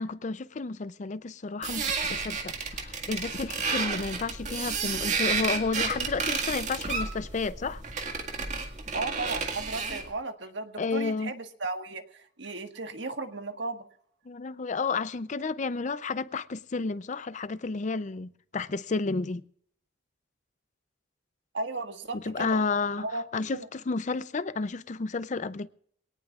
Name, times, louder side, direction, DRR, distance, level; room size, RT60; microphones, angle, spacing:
voice 1, 0.0-7.8 10.8-11.3 14.3-19.4 22.1-23.1 23.3-25.7, left 4 dB, 40° left, 0.5 m, -31 dB
sound 1, 1.6-10.1, right 4 dB, 40° right, 2.0 m, -31 dB
voice 2, 8.9-13.9 21.5-22.7 23.0-23.2 23.5-23.7, right 3 dB, 70° right, 1.6 m, -35 dB
23.5 x 18.5 x 2.4 m
head